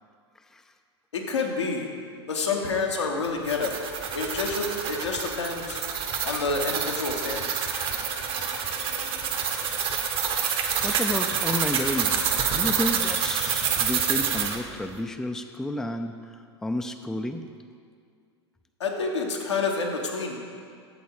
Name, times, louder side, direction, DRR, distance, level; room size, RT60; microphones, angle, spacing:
voice 1, 1.1-1.9 2.3-5.8 6.2-7.6 18.8-20.4, left 4 dB, 80° left, 0 dB, 1.2 m, -28 dB
sound 1, 3.2-14.6, right 7 dB, 40° right, 0.9 m, -27 dB
voice 2, 10.8-12.2 12.5-17.4, left 1 dB, 5° left, 7 dB, 0.4 m, -31 dB
8.4 x 7.0 x 4.7 m, 2.2 s
hypercardioid pair, 90°, 14 cm